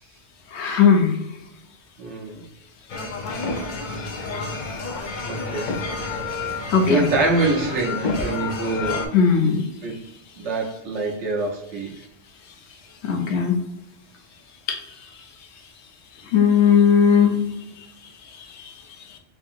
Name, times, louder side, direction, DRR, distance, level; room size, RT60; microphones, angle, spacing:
voice 1, 0.5-1.1 6.7-7.0 9.1-9.6 13.0-13.5 14.7-14.8 16.3-17.4, left 6 dB, 75° left, 4 dB, 0.9 m, -17 dB
voice 2, 2.0-2.4 5.3-5.7 6.6-9.1 9.8-10.0 10.4-11.9, right 2 dB, 85° right, -1 dB, 1.2 m, -25 dB
sound 1, 2.9-9.1, left 3 dB, 55° left, 0.6 m, -29 dB
3.6 x 2.7 x 2.4 m, 0.86 s
omnidirectional pair, 1.2 m